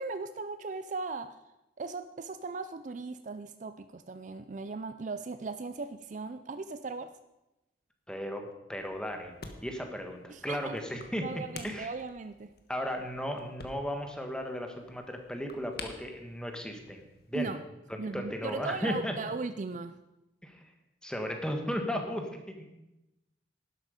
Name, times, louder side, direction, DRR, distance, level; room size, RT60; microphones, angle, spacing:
voice 1, 0.0-1.4 1.8-7.1 10.3-10.7 11.2-12.5 17.3-17.6 18.0-20.0, right 4 dB, 40° right, 11 dB, 0.4 m, -38 dB
voice 2, 8.1-9.3 9.6-11.9 12.7-17.5 17.9-19.1 20.4-20.6 21.0-22.7, equal, 5° left, 4 dB, 1.5 m, -35 dB
sound 1, 8.7-17.4, left 4 dB, 55° left, 1.4 m, -50 dB
11.5 x 11.5 x 5.2 m, 0.95 s
head